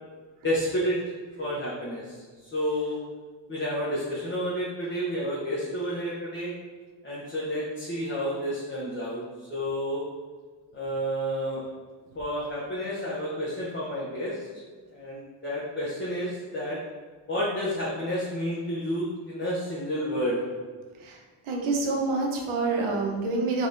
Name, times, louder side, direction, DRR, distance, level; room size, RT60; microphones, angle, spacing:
voice 1, 0.4-1.0 1.4-2.1 2.5-3.0 3.5-6.5 7.0-10.0 10.7-11.7 12.1-14.5 14.9-16.8 17.3-20.5, equal, 25° left, -7 dB, 0.8 m, -30 dB
voice 2, 21.4-23.7, right 3 dB, 90° right, 0 dB, 0.8 m, -27 dB
3.9 x 3.0 x 2.6 m, 1.4 s
cardioid pair, 85°, 48 cm